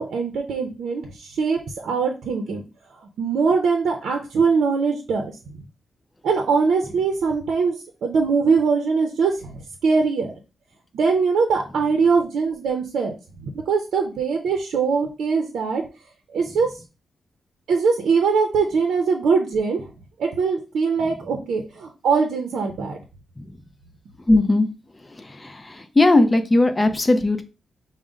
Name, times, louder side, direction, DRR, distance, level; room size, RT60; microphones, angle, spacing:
voice 1, 0.0-2.6 2.9-5.6 6.2-7.8 8.0-10.3 10.9-13.1 13.4-15.8 16.3-16.8 17.7-19.9 20.2-23.0, right 5 dB, 90° right, 3 dB, 0.6 m, -22 dB
voice 2, 24.3-24.7 25.4-25.5 26.0-27.4, left 2 dB, 20° left, 8 dB, 0.5 m, -17 dB
5.1 x 2.1 x 3.6 m, 0.31 s
wide cardioid pair, 130°, 0 cm